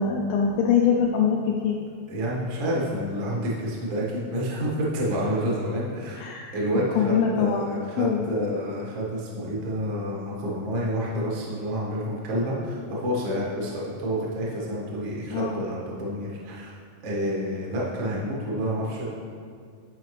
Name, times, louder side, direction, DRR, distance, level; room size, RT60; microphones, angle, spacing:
voice 1, 0.0-1.8 6.2-6.5 7.0-7.7 8.0-8.5 15.3-15.6, left 6 dB, 90° left, -1 dB, 2.0 m, -23 dB
voice 2, 2.1-16.7 17.0-19.1, equal, 90° right, -5 dB, 1.0 m, -29 dB
11.5 x 4.8 x 3.2 m, 2.2 s
omnidirectional pair, 4.7 m